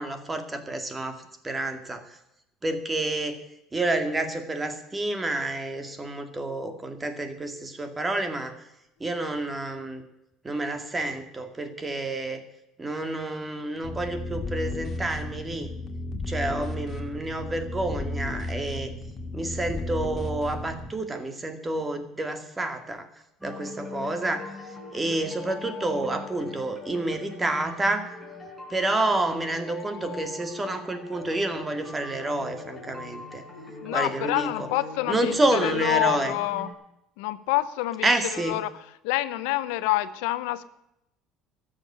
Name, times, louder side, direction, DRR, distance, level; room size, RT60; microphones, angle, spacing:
voice 1, 0.0-2.2 2.6-3.4 3.7-8.5 9.0-10.0 10.4-12.4 12.8-15.7 16.3-18.9 19.3-23.1 23.4-24.5 24.9-28.1 28.7-33.4 33.9-34.7 35.1-36.4 38.0-38.6, right 2 dB, 20° right, 8 dB, 2.2 m, -29 dB
sound 1, 13.8-20.9, left 2 dB, 35° left, 2.3 m, -34 dB
sound 2, 23.4-36.7, left 3 dB, ahead, 5.0 m, -41 dB
voice 2, 33.8-36.7 37.2-38.7 39.0-40.6, left 16 dB, 90° left, 15 dB, 0.7 m, -27 dB
13.0 x 7.4 x 10.0 m, 0.84 s
supercardioid pair, 105°, 0 cm